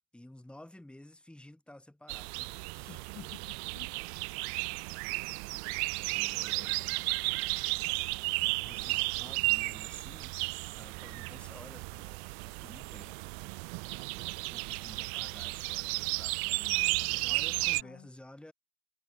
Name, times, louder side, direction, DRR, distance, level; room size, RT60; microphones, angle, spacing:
voice 1, 0.0-3.0 6.1-7.1 8.6-10.3 10.8-13.6 13.9-18.5, left 1 dB, 5° left, 2.1 m, -53 dB
sound 1, 2.1-17.8, right 38 dB, 50° right, 1.2 m, -34 dB
voice 2, 2.9-4.1 16.6-18.1, left 13 dB, 30° left, 1.5 m, -52 dB
supercardioid pair, 140°, 40 cm